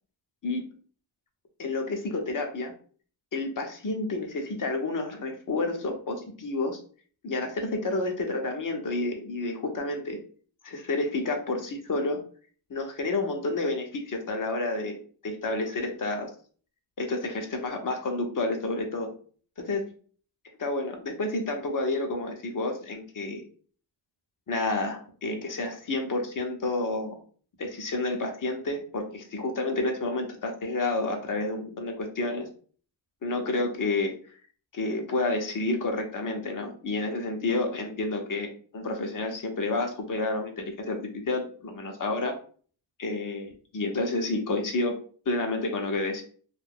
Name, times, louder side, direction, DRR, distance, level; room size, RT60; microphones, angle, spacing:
voice 1, 1.6-2.7 3.3-6.8 7.2-10.2 10.6-12.2 12.7-15.0 15.2-16.3 17.0-19.1 19.6-19.8 20.6-23.4 24.5-27.2 27.6-32.5 33.2-34.1 34.7-42.3 43.0-45.0 45.3-46.2, left 2 dB, 40° left, 3 dB, 0.8 m, -30 dB
2.5 x 2.4 x 3.5 m, 0.43 s
cardioid pair, 85°, 48 cm